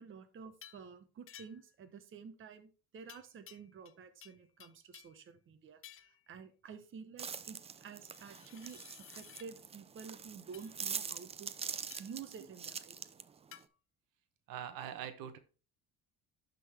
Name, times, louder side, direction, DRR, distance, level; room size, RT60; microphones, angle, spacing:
voice 1, 0.0-11.5 12.0-13.0, right 6 dB, 35° right, 8 dB, 0.9 m, -51 dB
sound 1, 0.6-0.9 1.3-1.8 3.1-5.2 5.8-6.2 7.9-9.5 10.5-10.7 11.9-12.2 13.5-13.7, left 10 dB, 40° left, 0.6 m, -56 dB
sound 2, 7.2-13.6, right 6 dB, 20° right, 0.4 m, -44 dB
voice 2, 14.5-15.4, right 9 dB, 80° right, 11 dB, 0.9 m, -43 dB
11.5 x 3.9 x 3.4 m, 0.36 s
cardioid pair, 125°, 34 cm